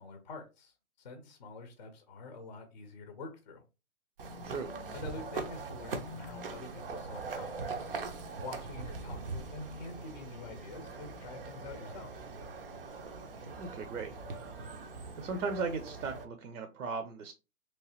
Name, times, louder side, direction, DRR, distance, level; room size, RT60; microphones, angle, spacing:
voice 1, 0.0-3.6 4.9-8.0 8.4-12.1, left 3 dB, 30° left, 5 dB, 0.6 m, -46 dB
sound 1, 4.2-16.3, right 3 dB, 40° right, 0.5 m, -42 dB
voice 2, 13.6-14.1 15.1-17.3, right 4 dB, 80° right, 7 dB, 0.8 m, -37 dB
3.1 x 3.1 x 2.9 m, 0.29 s
hypercardioid pair, 165°, 43 cm